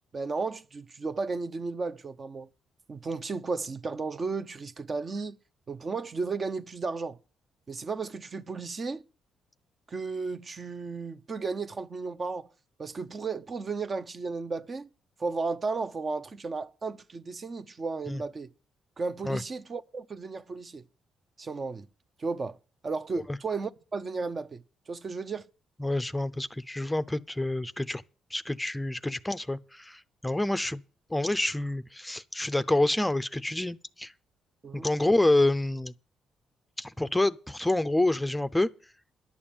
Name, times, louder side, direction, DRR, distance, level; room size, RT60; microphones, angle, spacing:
voice 1, 0.1-2.5 2.9-5.4 5.7-7.2 7.7-9.0 9.9-12.5 12.8-14.9 15.2-18.5 19.0-20.8 21.4-21.9 22.2-22.6 22.8-25.5 34.6-34.9, right 4 dB, 35° right, 0.7 m, -34 dB
voice 2, 25.8-28.0 28.3-30.8 31.1-34.1 34.7-35.9 36.8-38.7, left 2 dB, 10° left, 0.6 m, -27 dB
11.0 x 7.0 x 8.8 m
cardioid pair, 90°, 0 cm